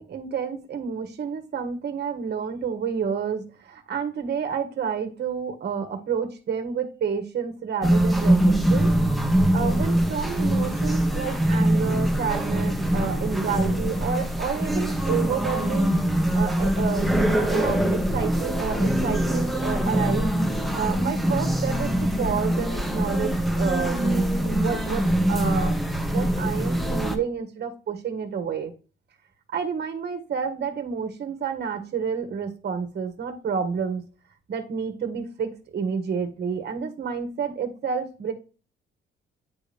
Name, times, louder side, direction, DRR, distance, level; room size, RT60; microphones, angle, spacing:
voice 1, 0.0-8.9 9.3-15.9 16.3-25.8 26.1-28.7 29.5-34.0 34.5-38.3, right 6 dB, 55° right, 6 dB, 1.7 m, -29 dB
sound 1, 7.8-27.2, right 1 dB, ahead, 1.3 m, -23 dB
9.6 x 3.7 x 3.5 m, 0.35 s
cardioid pair, 90°, 20 cm